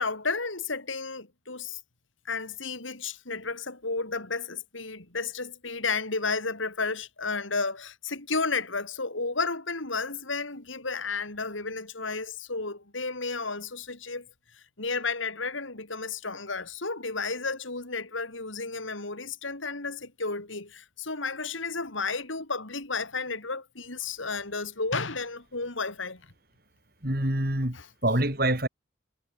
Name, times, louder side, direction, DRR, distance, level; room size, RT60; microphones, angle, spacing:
voice 1, 0.0-1.8 2.2-14.3 14.8-26.2 27.7-27.9, left 4 dB, 80° left, 4.4 m, -32 dB
voice 2, 27.0-27.8 28.0-28.7, right 1 dB, 50° right, 4.7 m, -25 dB
head